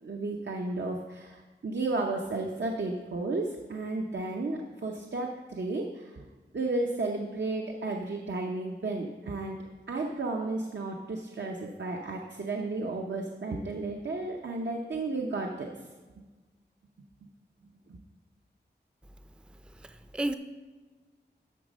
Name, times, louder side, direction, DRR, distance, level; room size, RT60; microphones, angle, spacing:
voice 1, 0.0-6.2 6.5-9.6 9.9-15.7 17.9-18.0, right 2 dB, 75° right, 1 dB, 0.8 m, -33 dB
voice 2, 19.6-20.3, right 1 dB, 5° right, 9 dB, 0.4 m, -33 dB
11.5 x 4.1 x 6.2 m, 1.3 s
wide cardioid pair, 60°, 18 cm